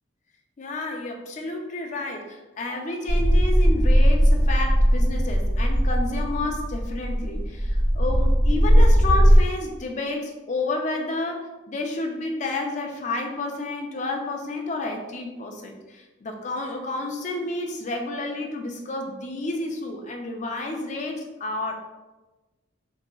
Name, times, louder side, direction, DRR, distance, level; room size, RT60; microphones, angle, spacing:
voice 1, 0.6-21.7, left 2 dB, 35° left, 2 dB, 0.4 m, -30 dB
sound 1, 3.1-9.4, equal, 30° right, 1.4 m, -19 dB
3.7 x 2.8 x 2.3 m, 1.1 s
head